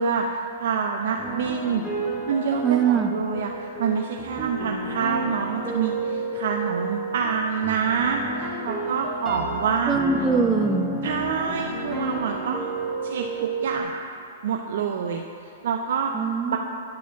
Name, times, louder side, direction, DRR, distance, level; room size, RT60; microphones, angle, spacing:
voice 1, 0.0-10.0 11.0-12.7 13.0-14.0 14.4-16.1 16.5-16.6, right 6 dB, 65° right, 2 dB, 0.5 m, -27 dB
sound 1, 1.2-13.8, right 2 dB, 5° left, 1.6 m, -31 dB
voice 2, 2.6-3.1 9.9-10.9 16.1-16.6, right 5 dB, 20° right, 4 dB, 0.8 m, -22 dB
9.4 x 5.0 x 5.6 m, 2.5 s
hypercardioid pair, 125°, 0 cm